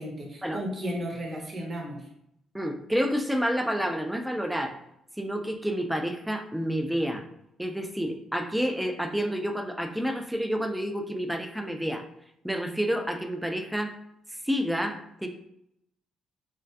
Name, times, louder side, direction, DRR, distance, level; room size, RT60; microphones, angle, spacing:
voice 1, 0.0-2.0, equal, 35° right, 0 dB, 0.7 m, -34 dB
voice 2, 2.5-4.8 5.2-7.2 7.6-12.0 12.4-13.9 14.4-15.3, equal, 5° right, 5 dB, 0.3 m, -29 dB
2.4 x 2.3 x 2.2 m, 0.77 s
figure-of-eight pair, 45°, 0 cm